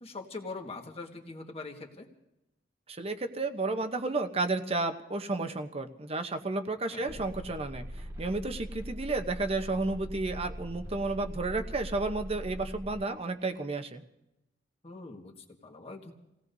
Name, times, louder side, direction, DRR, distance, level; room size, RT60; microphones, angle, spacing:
voice 1, 0.0-2.1 6.9-7.2 14.8-16.1, left 3 dB, 35° left, 3 dB, 1.6 m, -43 dB
voice 2, 2.9-7.8 8.2-14.0, right 3 dB, 35° right, 8 dB, 0.9 m, -32 dB
sound 1, 7.1-13.0, equal, 15° right, 1.7 m, -41 dB
29.0 x 17.5 x 2.7 m, 0.90 s
head